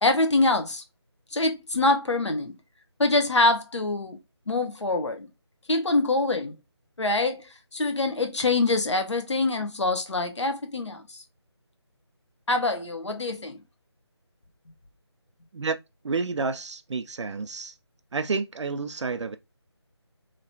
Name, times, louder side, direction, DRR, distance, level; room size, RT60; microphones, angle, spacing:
voice 1, 0.0-0.8 1.3-2.5 3.0-4.2 4.5-5.3 5.7-6.5 7.0-7.5 7.7-11.0 12.5-13.6, left 2 dB, 80° left, 0.7 m, -24 dB
voice 2, 16.0-17.7 18.1-19.4, right 4 dB, 80° right, 0.4 m, -30 dB
3.2 x 2.9 x 2.6 m
figure-of-eight pair, 165°, 15 cm